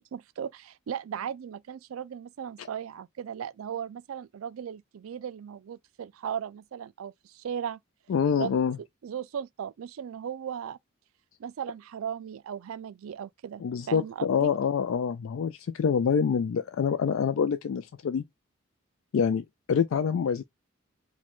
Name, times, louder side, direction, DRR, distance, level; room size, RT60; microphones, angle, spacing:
voice 1, 0.1-7.8 8.4-8.6 9.0-10.8 11.4-14.5, right 8 dB, 80° right, 0.4 m, -37 dB
voice 2, 8.1-8.8 13.6-18.2 19.1-20.4, left 6 dB, 70° left, 0.3 m, -26 dB
5.0 x 2.2 x 3.5 m
head